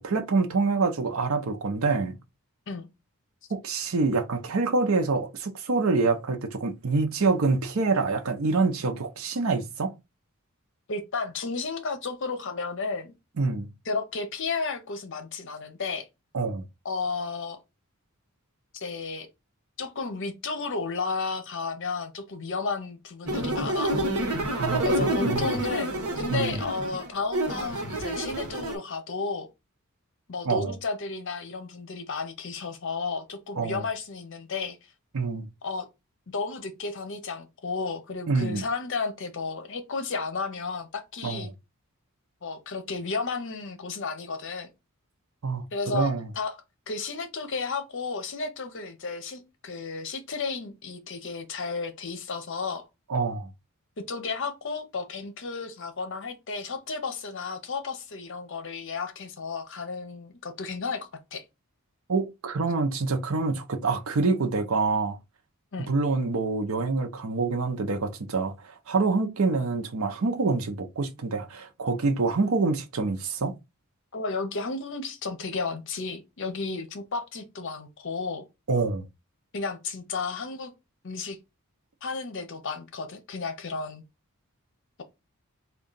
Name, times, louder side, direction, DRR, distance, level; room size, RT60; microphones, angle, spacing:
voice 1, 0.0-2.2 3.5-9.9 13.4-13.7 16.3-16.6 24.6-24.9 25.2-25.5 26.3-26.6 30.5-30.7 33.6-33.8 35.1-35.5 38.3-38.6 41.2-41.4 45.4-45.7 45.9-46.3 53.1-53.5 62.1-65.2 65.9-73.5 78.7-79.1, right 3 dB, 65° right, 0.6 m, -26 dB
voice 2, 10.9-13.1 13.9-16.1 16.8-17.6 18.7-19.3 19.8-24.0 24.8-29.5 30.3-34.8 35.6-35.9 36.3-41.5 42.4-44.7 45.7-52.9 54.0-61.4 65.7-65.9 74.1-78.5 79.5-80.7 81.0-81.4 82.0-84.0, left 4 dB, 55° left, 0.7 m, -33 dB
sound 1, 23.3-28.8, right 1 dB, 85° right, 1.1 m, -28 dB
3.6 x 2.4 x 3.9 m
head